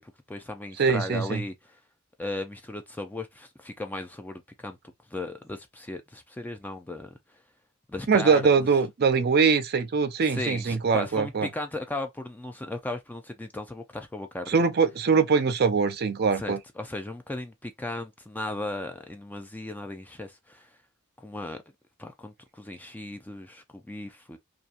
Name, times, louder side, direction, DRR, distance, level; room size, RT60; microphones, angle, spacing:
voice 1, 0.0-1.8 2.2-4.8 5.1-7.1 7.9-8.4 10.2-14.6 16.3-20.7 21.2-21.6 22.0-24.4, left 2 dB, 10° left, 0.3 m, -36 dB
voice 2, 0.8-1.4 8.1-11.5 14.5-16.6, right 5 dB, 50° right, 0.5 m, -22 dB
2.4 x 2.2 x 2.6 m
head